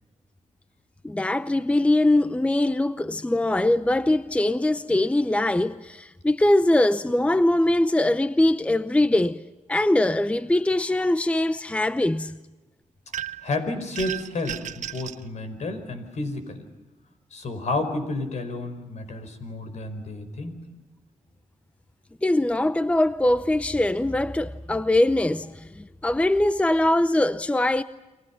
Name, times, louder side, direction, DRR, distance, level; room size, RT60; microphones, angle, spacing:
voice 1, 1.0-9.4 9.7-12.4 22.2-27.8, left 1 dB, 10° left, 0.7 m, -22 dB
sound 1, 13.1-13.5 14.0-15.2, right 10 dB, 70° right, 1.0 m, -34 dB
voice 2, 13.4-16.6 17.3-20.6, left 2 dB, 65° left, 5.0 m, -31 dB
29.5 x 24.0 x 5.8 m
cardioid pair, 85°, 13 cm